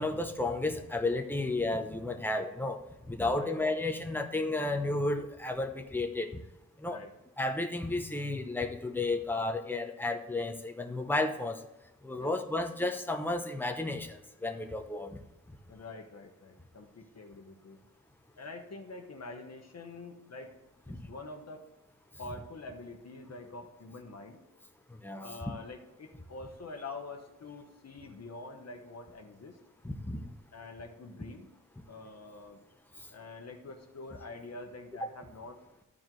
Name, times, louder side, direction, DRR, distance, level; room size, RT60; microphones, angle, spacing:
voice 1, 0.0-2.8 3.1-6.4 6.8-7.0 7.4-11.6 12.0-15.2 20.9-21.0 25.0-25.4 29.8-30.2, left 2 dB, 5° left, 5 dB, 0.7 m, -32 dB
voice 2, 15.7-17.8 18.4-20.5 21.1-21.6 22.2-24.4 25.2-29.6 30.5-31.5 31.9-32.6 33.1-35.6, left 3 dB, 50° left, 3 dB, 1.1 m, -46 dB
13.5 x 4.6 x 3.9 m, 1.0 s
wide cardioid pair, 170°, 33 cm